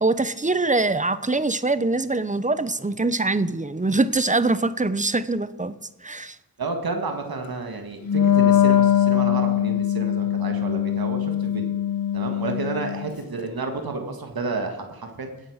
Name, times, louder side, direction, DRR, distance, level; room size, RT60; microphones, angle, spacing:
voice 1, 0.0-5.7 6.0-6.4, right 3 dB, 20° right, 0.8 m, -23 dB
voice 2, 6.6-11.7 12.1-15.3, right 3 dB, 85° right, 1.9 m, -31 dB
Wind instrument woodwind instrument, 8.0-13.1, left 10 dB, 80° left, 1.1 m, -21 dB
18.0 x 8.1 x 6.5 m
wide cardioid pair, 70°, 35 cm